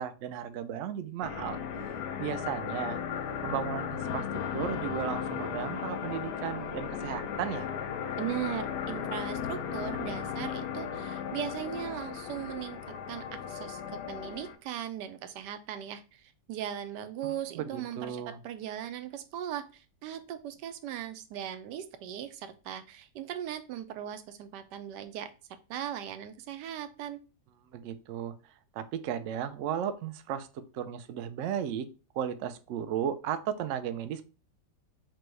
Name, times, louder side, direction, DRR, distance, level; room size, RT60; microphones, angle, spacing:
voice 1, 0.0-1.6 2.2-3.0 3.4-4.2 4.5-7.7 17.5-18.4 27.7-28.3 28.7-31.9 32.1-34.2, right 9 dB, 70° right, 9 dB, 0.7 m, -35 dB
sound 1, 1.2-14.5, left 7 dB, 85° left, 1.2 m, -36 dB
voice 2, 8.2-12.8 13.1-16.2 16.5-25.3 25.7-27.2, right 10 dB, 90° right, 10 dB, 1.2 m, -38 dB
6.0 x 2.2 x 3.1 m, 0.33 s
omnidirectional pair, 1.8 m